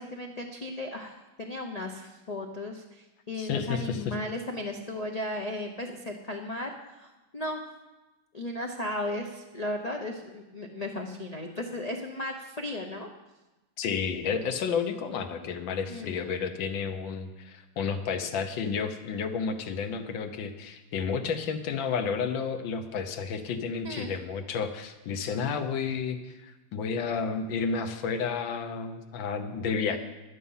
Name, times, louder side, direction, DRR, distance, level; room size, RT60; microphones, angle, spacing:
voice 1, 0.0-7.6 8.3-13.1 15.9-16.5 23.8-24.1 29.9-30.0, left 1 dB, 70° left, 2 dB, 0.3 m, -36 dB
voice 2, 3.4-4.1 13.8-30.0, left 6 dB, 85° left, 8 dB, 1.6 m, -31 dB
11.5 x 9.3 x 5.5 m, 1.1 s
omnidirectional pair, 2.0 m